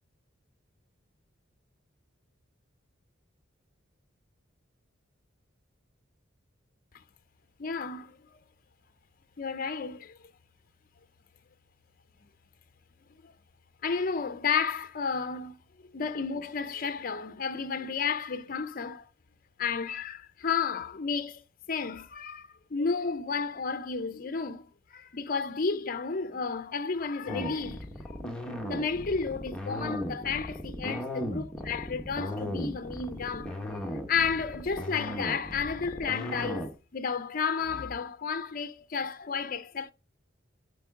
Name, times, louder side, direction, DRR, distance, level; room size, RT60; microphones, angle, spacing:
voice 1, 7.6-8.2 9.4-10.2 13.2-13.3 13.8-15.6 15.9-19.1 19.6-21.4 21.7-24.6 24.9-39.9, left 5 dB, 45° left, 0.5 m, -32 dB
sound 1, 27.3-36.7, equal, 5° left, 1.2 m, -36 dB
8.8 x 4.6 x 3.6 m
head